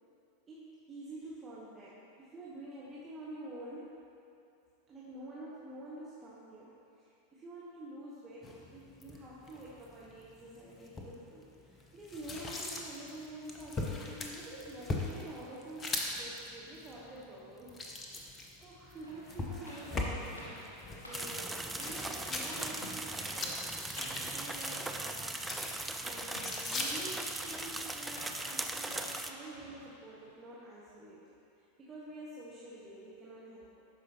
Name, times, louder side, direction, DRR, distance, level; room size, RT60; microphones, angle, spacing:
voice 1, 0.5-4.0 4.9-18.2 18.6-20.7 21.1-23.6 24.0-25.3 26.0-31.2 31.6-33.8, right 1 dB, 25° right, -7 dB, 1.1 m, -48 dB
sound 1, 8.4-27.5, left 2 dB, 25° left, 0.8 m, -42 dB
sound 2, 19.0-30.3, equal, 80° left, 1.5 m, -50 dB
sound 3, 21.1-29.3, right 2 dB, 5° right, 0.4 m, -39 dB
12.0 x 4.8 x 2.9 m, 2.7 s
figure-of-eight pair, 85°, 0 cm